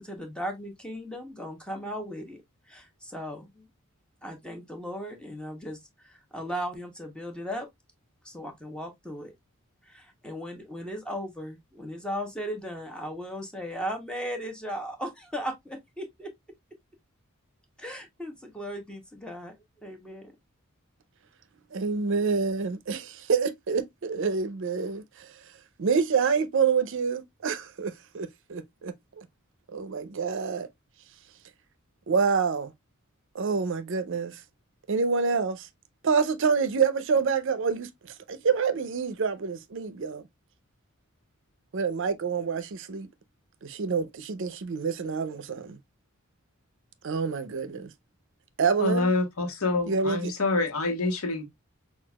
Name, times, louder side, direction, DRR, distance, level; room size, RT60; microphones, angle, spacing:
voice 1, 0.0-2.4 2.7-3.7 4.2-7.7 8.2-9.3 9.8-16.3 17.8-19.6 19.8-20.3, equal, 5° left, 0.8 m, -37 dB
voice 2, 21.7-25.3 25.8-29.3 29.7-30.7 32.1-32.7 33.3-34.4 34.9-35.7 36.0-40.2 41.7-43.1 43.6-45.8 47.0-47.9 48.6-49.1 49.9-50.3, right 5 dB, 60° right, 0.5 m, -27 dB
voice 3, 48.8-51.4, left 3 dB, 85° left, 1.0 m, -26 dB
5.8 x 2.4 x 2.3 m
head